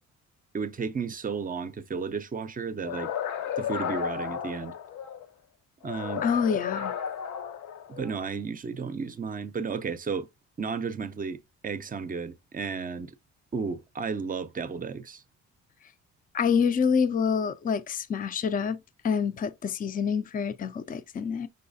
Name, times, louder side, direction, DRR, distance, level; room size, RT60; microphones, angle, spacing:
voice 1, 0.5-3.1 3.6-4.7 5.8-6.3 7.9-10.3 10.6-13.1 13.5-15.2, right 5 dB, 30° right, 0.5 m, -33 dB
sound 1, 2.8-5.3 5.8-8.3, left 8 dB, 80° left, 0.6 m, -33 dB
voice 2, 6.2-6.9 16.3-18.8 19.0-21.5, left 6 dB, 30° left, 0.4 m, -27 dB
5.5 x 3.1 x 2.6 m
cardioid pair, 90°, 30 cm